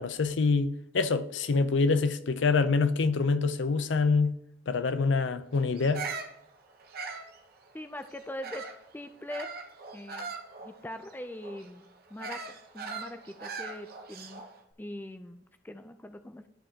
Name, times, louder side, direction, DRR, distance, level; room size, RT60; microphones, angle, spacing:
voice 1, 0.0-4.3 4.7-6.0, left 4 dB, 75° left, 0.5 m, -26 dB
Bird vocalization bird call bird song, 5.7-8.9 9.3-14.6, right 5 dB, 55° right, 0.8 m, -41 dB
voice 2, 7.7-8.7 8.9-9.5 9.9-10.3 10.6-14.4 14.8-15.4 15.6-16.4, left 1 dB, 10° left, 0.4 m, -42 dB
12.5 x 5.2 x 2.8 m
head